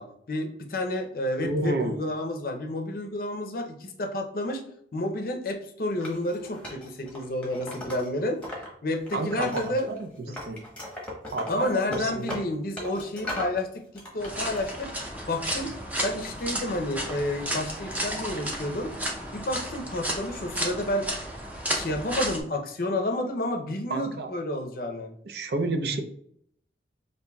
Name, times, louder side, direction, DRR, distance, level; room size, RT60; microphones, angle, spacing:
voice 1, 0.0-4.6 4.9-8.4 8.8-9.9 11.5-14.9 15.3-15.7 16.0-18.9 19.3-21.1 21.7-25.1, left 1 dB, 50° left, 4 dB, 0.5 m, -30 dB
voice 2, 1.4-2.0 9.1-10.1 10.5-10.6 11.3-12.4 23.9-24.3 25.2-26.0, right 2 dB, 60° right, 6 dB, 0.5 m, -30 dB
Wood, 6.0-8.7 9.0-10.0 10.3-13.6 13.9-14.6, left 1 dB, 5° left, 0.9 m, -38 dB
sound 1, 14.2-22.4, equal, 10° right, 0.5 m, -33 dB
5.4 x 2.6 x 2.2 m, 0.68 s
head